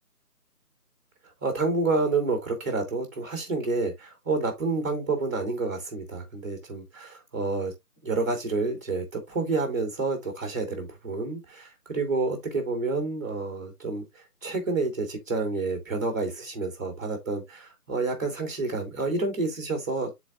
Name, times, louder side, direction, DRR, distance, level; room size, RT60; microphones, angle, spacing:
voice 1, 1.4-7.7 8.0-20.1, right 3 dB, 10° right, 1.2 m, -29 dB
10.5 x 4.1 x 2.3 m
figure-of-eight pair, 160°, 47 cm